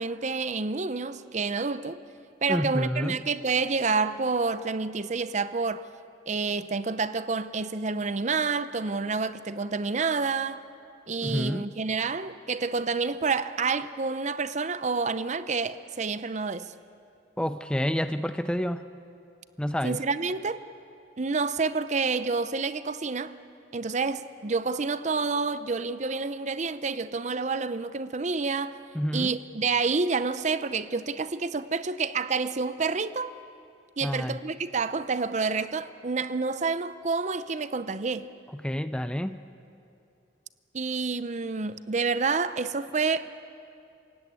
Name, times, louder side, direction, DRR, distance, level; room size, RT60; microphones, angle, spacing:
voice 1, 0.0-2.0 2.4-5.8 6.3-10.6 11.1-16.7 19.8-20.6 21.2-23.3 23.7-28.8 29.1-33.3 34.0-38.3 40.7-43.3, right 4 dB, 40° right, 0.6 m, -28 dB
voice 2, 2.5-3.2 11.2-11.7 17.4-18.8 19.6-20.0 28.9-29.3 34.0-34.4 38.5-39.4, equal, 5° left, 0.5 m, -29 dB
27.5 x 16.0 x 8.9 m
head